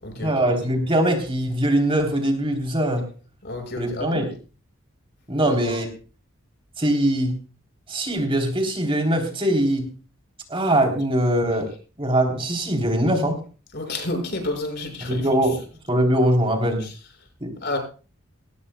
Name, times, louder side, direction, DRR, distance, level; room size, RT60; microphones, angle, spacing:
voice 1, 0.1-3.1 3.8-4.3 5.3-5.9 6.8-7.3 7.9-9.8 10.5-11.7 12.0-13.4 15.0-15.5 15.9-16.8 17.4-17.5, right 1 dB, 25° right, 2 dB, 3.5 m, -22 dB
voice 2, 3.4-4.2 5.4-5.8 13.7-15.3 16.8-16.9 17.6-17.8, left 2 dB, 50° left, 4 dB, 6.0 m, -30 dB
21.5 x 18.5 x 2.3 m, 0.37 s
head